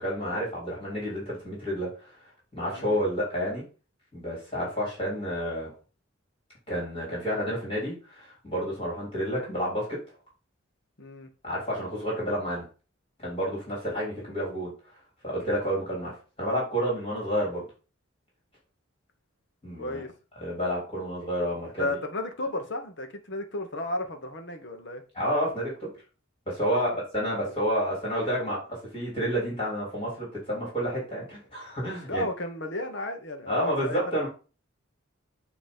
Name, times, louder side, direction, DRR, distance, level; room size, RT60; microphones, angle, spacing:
voice 1, 0.0-2.2 2.5-3.6 4.1-5.7 6.7-10.0 11.4-12.6 13.2-14.7 15.2-16.1 16.4-17.7 19.6-20.0 20.4-21.9 25.1-25.9 26.5-28.6 28.9-32.2 33.5-34.3, equal, 25° left, -5 dB, 3.5 m, -30 dB
voice 2, 2.7-3.1 11.0-11.3 14.2-14.5 19.8-20.2 21.8-25.0 26.7-27.0 27.4-27.6 32.1-34.0, left 2 dB, 60° left, 6 dB, 1.2 m, -34 dB
7.9 x 3.2 x 5.3 m, 0.36 s
head